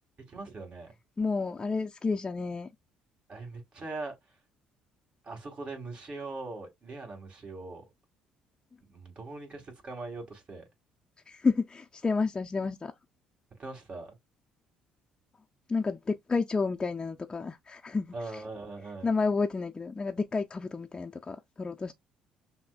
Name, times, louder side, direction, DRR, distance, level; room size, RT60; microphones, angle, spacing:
voice 1, 0.2-0.9 3.3-4.2 5.2-7.9 8.8-10.6 13.6-14.2 18.1-19.1, right 3 dB, 40° right, 2.1 m, -41 dB
voice 2, 1.2-2.7 11.3-12.9 15.7-18.4 19.0-21.9, left 4 dB, 25° left, 0.5 m, -30 dB
5.7 x 2.1 x 2.3 m
hypercardioid pair, 60°, 3 cm